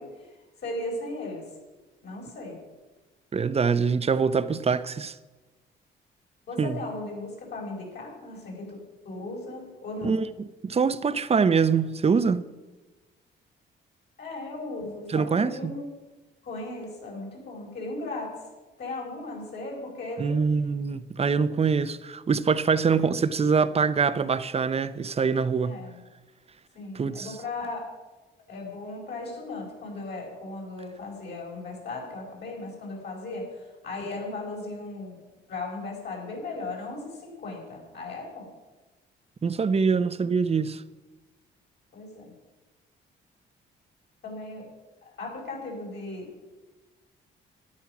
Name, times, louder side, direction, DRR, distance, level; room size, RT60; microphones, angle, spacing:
voice 1, 0.0-1.5 2.0-2.6 6.5-8.8 9.0-10.2 14.2-15.9 16.4-18.5 18.8-20.4 25.7-26.0 26.8-27.8 28.5-35.2 35.5-38.5 41.9-42.3 44.2-44.7 45.0-46.3, left 2 dB, 60° left, 5.3 m, -37 dB
voice 2, 3.3-5.2 6.6-6.8 10.0-10.3 10.6-12.5 15.1-15.7 20.2-25.7 26.9-27.4 39.4-40.8, right 5 dB, 30° right, 0.7 m, -24 dB
13.0 x 10.5 x 6.0 m
cardioid pair, 90°, 20 cm